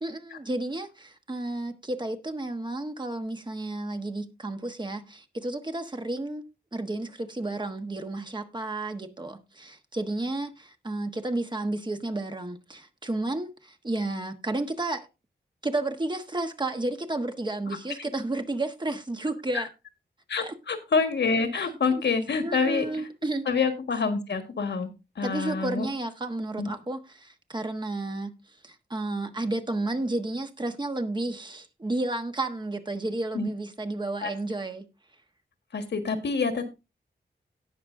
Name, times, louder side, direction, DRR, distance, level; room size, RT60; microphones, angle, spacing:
voice 1, 0.0-6.4 6.7-15.1 15.6-19.7 20.4-20.5 22.4-23.5 25.2-28.3 28.6-34.8, right 2 dB, 25° right, 1.3 m, -32 dB
voice 2, 20.3-23.1 23.4-25.9 26.6-26.7 33.3-33.5 34.2-34.3 35.7-36.7, left 4 dB, 75° left, 1.7 m, -27 dB
17.5 x 6.2 x 2.6 m
wide cardioid pair, 115°, 18 cm